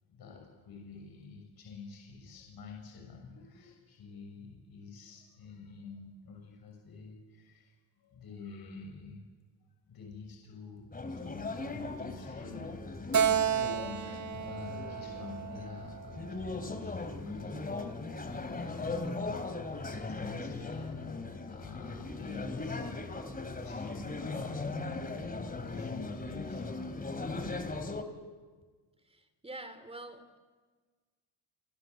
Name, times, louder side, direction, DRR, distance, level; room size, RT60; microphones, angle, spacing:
voice 1, 0.1-9.2 9.9-10.9 11.2-18.3 18.6-22.9 23.3-24.6 24.9-27.2, left 5 dB, 55° left, 1 dB, 6.6 m, -48 dB
sound 1, 10.9-28.0, left 3 dB, 20° left, 3.0 m, -39 dB
Keyboard (musical), 13.1-16.6, right 8 dB, 40° right, 2.0 m, -32 dB
voice 2, 29.0-30.4, right 2 dB, 15° right, 10 dB, 3.2 m, -46 dB
27.5 x 25.5 x 8.1 m, 1.4 s
cardioid pair, 105°, 44 cm